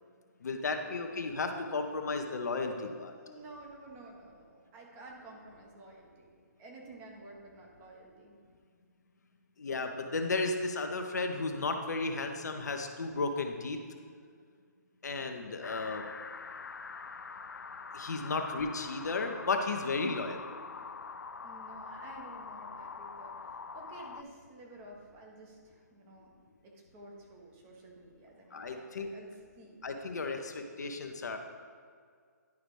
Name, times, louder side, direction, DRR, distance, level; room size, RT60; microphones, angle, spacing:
voice 1, 0.4-3.1 9.6-13.8 15.0-16.0 17.9-20.4 28.5-29.1 29.8-31.4, left 3 dB, 65° left, 5 dB, 0.8 m, -34 dB
voice 2, 3.2-8.3 18.3-18.5 20.8-20.9 21.4-26.3 26.6-29.8, right 2 dB, 20° right, -1 dB, 1.1 m, -52 dB
sound 1, 15.6-24.2, left 5 dB, 85° left, 0.4 m, -44 dB
10.5 x 4.9 x 3.3 m, 2.1 s
figure-of-eight pair, 140°, 10 cm